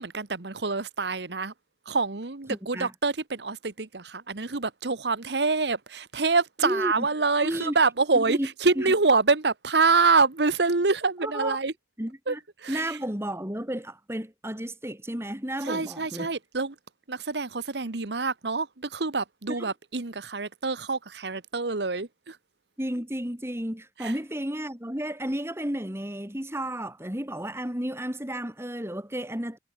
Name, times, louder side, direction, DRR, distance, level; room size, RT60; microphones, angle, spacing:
voice 1, 0.0-1.5 1.9-11.7 12.3-12.4 12.6-13.0 15.6-16.7 17.1-22.4 24.0-24.1, right 4 dB, 70° right, 1.3 m, -26 dB
voice 2, 2.5-2.9 6.6-7.1 7.4-7.8 8.1-8.5 8.8-8.9 11.2-11.6 12.0-12.4 12.7-16.3 19.5-19.7 22.8-29.6, right 1 dB, 15° right, 3.9 m, -32 dB
head